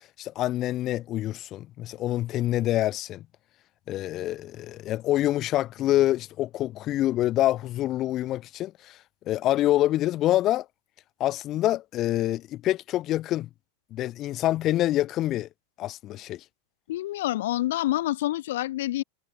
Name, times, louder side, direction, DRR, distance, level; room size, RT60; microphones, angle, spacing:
voice 1, 0.2-3.2 3.9-9.0 9.3-10.6 11.2-13.5 13.9-15.5 15.8-16.4, left 14 dB, 35° left, 1.3 m, -26 dB
voice 2, 16.9-19.0, left 15 dB, 55° left, 0.5 m, -27 dB
figure-of-eight pair, 90°, 0 cm